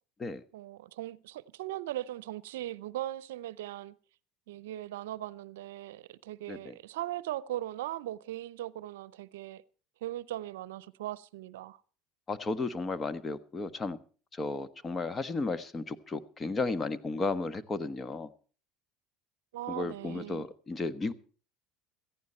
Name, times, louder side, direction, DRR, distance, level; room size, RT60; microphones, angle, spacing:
voice 1, 0.5-4.0 4.5-9.6 10.0-11.8 19.5-20.5, right 14 dB, 85° right, 0.6 m, -39 dB
voice 2, 12.3-14.0 14.3-18.3 19.7-21.1, left 3 dB, 25° left, 1.2 m, -34 dB
16.5 x 14.5 x 4.4 m
hypercardioid pair, 85°, 0 cm